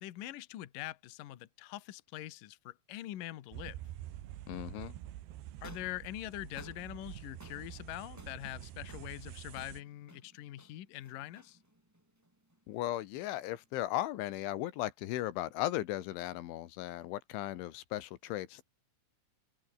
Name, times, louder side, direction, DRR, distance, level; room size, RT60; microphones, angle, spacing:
voice 1, 0.0-3.8 5.6-11.6, left 15 dB, 60° left, 2.5 m, -43 dB
sound 1, 3.5-9.8, right 13 dB, 70° right, 3.3 m, -47 dB
voice 2, 4.5-5.0 12.7-18.6, left 14 dB, 85° left, 3.7 m, -36 dB
sound 2, 5.6-13.8, right 1 dB, 5° right, 1.6 m, -58 dB
omnidirectional pair, 5.4 m